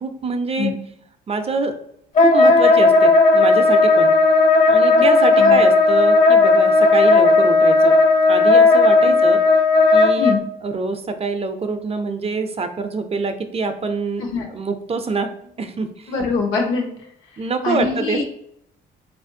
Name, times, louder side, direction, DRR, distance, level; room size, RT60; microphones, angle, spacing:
voice 1, 0.0-0.7 1.3-1.7 2.2-4.2 4.7-8.0 8.3-9.4 9.9-10.3 10.6-14.2 14.5-16.1 17.4-18.3, right 4 dB, 30° right, 8 dB, 0.4 m, -25 dB
Wind instrument woodwind instrument, 2.2-10.4, left 3 dB, 40° left, 0.6 m, -14 dB
voice 2, 16.1-18.2, left 4 dB, 85° left, 0 dB, 0.9 m, -24 dB
3.9 x 2.5 x 2.6 m, 0.73 s
cardioid pair, 90°, 20 cm